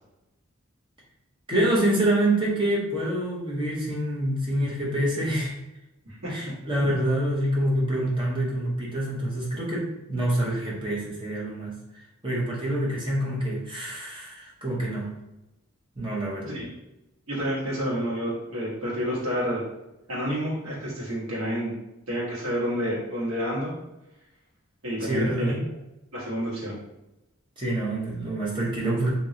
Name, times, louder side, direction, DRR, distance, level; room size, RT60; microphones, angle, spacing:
voice 1, 1.5-5.5 6.3-11.7 12.2-15.1 16.0-16.6 25.0-25.6 27.6-29.1, right 1 dB, 25° right, -4 dB, 0.8 m, -26 dB
voice 2, 17.3-19.6 20.1-21.7 22.1-23.7 24.8-25.5 26.1-26.8, equal, 80° right, -6 dB, 1.3 m, -29 dB
3.0 x 2.8 x 2.7 m, 0.95 s
head